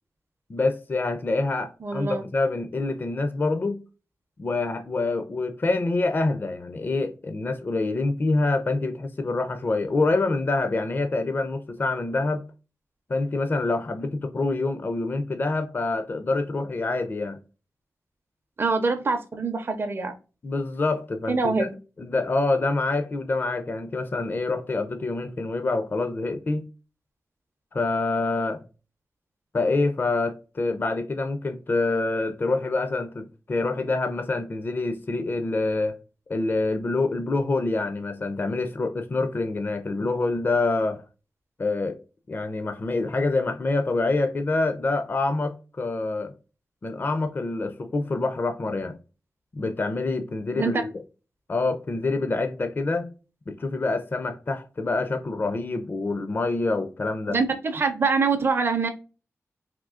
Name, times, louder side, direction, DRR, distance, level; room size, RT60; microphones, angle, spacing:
voice 1, 0.5-3.8 4.4-12.4 13.1-17.4 20.4-21.7 22.0-26.7 27.7-28.6 29.5-36.0 36.3-41.0 41.6-42.0 42.3-46.3 46.8-49.0 49.5-50.9 51.5-53.1 53.5-57.4, left 3 dB, 35° left, 0.4 m, -26 dB
voice 2, 1.8-2.2 18.6-20.1 21.3-21.7 50.5-50.8 57.3-58.9, right 4 dB, 40° right, 0.5 m, -24 dB
3.6 x 2.6 x 2.4 m
wide cardioid pair, 105°, 6 cm